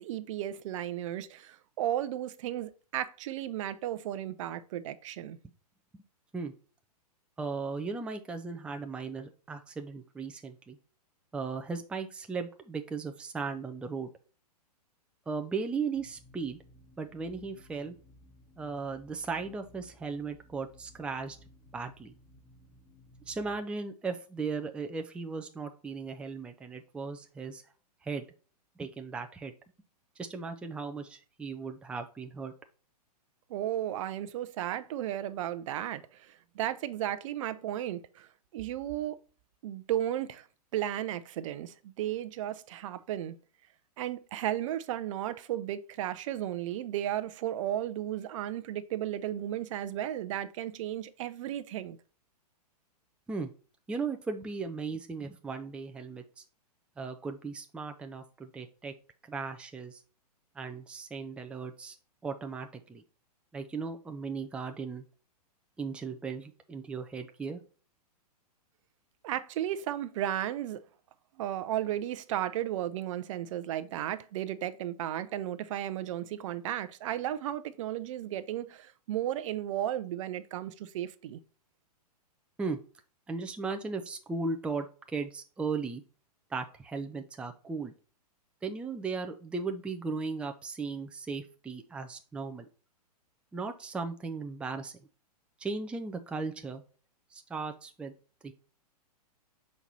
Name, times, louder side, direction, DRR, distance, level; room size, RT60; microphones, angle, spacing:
voice 1, 0.0-5.4 33.5-38.3 38.5-39.2 39.6-40.5 40.7-43.4 44.0-52.0 69.2-70.8 71.4-81.4, right 12 dB, 50° right, 0.6 m, -34 dB
voice 2, 7.4-10.8 11.3-14.1 15.3-16.6 17.0-18.0 18.6-21.4 21.7-22.1 23.3-27.6 28.0-28.2 28.8-29.5 30.2-32.5 53.3-53.5 53.9-56.4 57.0-58.9 59.3-60.0 60.6-62.0 62.2-63.0 63.5-65.0 65.8-67.6 82.6-82.8 83.3-84.9 85.1-86.0 86.5-87.9 88.6-92.6 93.5-94.9 95.6-96.8 97.3-98.1 98.4-98.5, right 4 dB, 5° right, 0.4 m, -37 dB
sound 1, 15.9-23.6, equal, 30° left, 1.8 m, -58 dB
5.8 x 4.3 x 4.0 m
hypercardioid pair, 115°, 21 cm